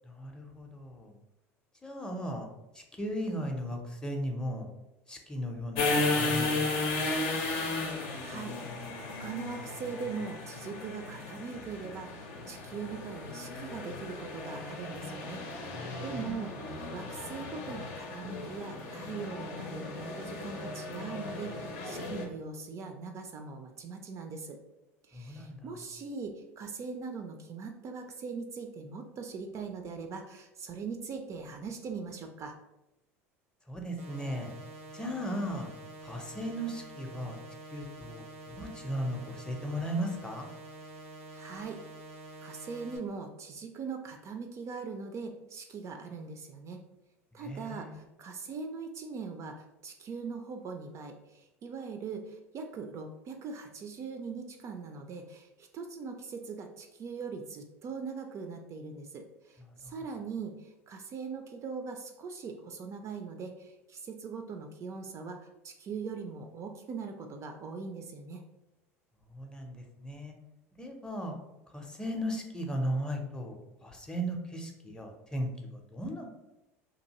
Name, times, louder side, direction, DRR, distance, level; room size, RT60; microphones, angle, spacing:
voice 1, 0.2-1.1 1.8-2.5 2.7-4.7 5.1-6.8 15.7-16.3 25.1-25.6 33.7-34.5 34.9-35.7 36.0-37.4 37.7-40.5 47.3-48.1 59.8-59.9 69.3-70.3 70.8-71.3 71.7-76.3, equal, 10° left, 2 dB, 0.5 m, -36 dB
sound 1, 5.8-22.3, left 3 dB, 70° left, 0.6 m, -35 dB
voice 2, 7.9-8.6 9.0-15.4 16.0-24.6 25.1-32.6 41.3-41.8 42.4-46.8 47.3-68.4, right 5 dB, 40° right, 5 dB, 0.3 m, -41 dB
sound 2, 34.0-43.0, right 2 dB, 90° right, 0.7 m, -47 dB
2.7 x 2.5 x 2.8 m, 0.96 s
hypercardioid pair, 85°, 8 cm